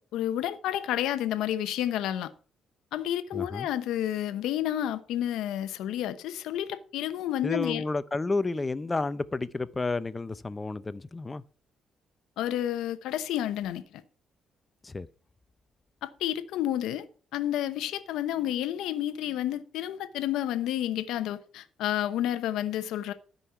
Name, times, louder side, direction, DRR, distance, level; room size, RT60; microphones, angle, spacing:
voice 1, 0.0-2.3 2.9-7.8 12.4-14.0 16.0-17.1 17.3-23.1, left 12 dB, 90° left, 0.9 m, -30 dB
voice 2, 3.3-3.7 7.4-11.4 14.8-15.1, left 3 dB, 25° left, 0.6 m, -31 dB
13.0 x 5.4 x 5.8 m
cardioid pair, 90°, 0 cm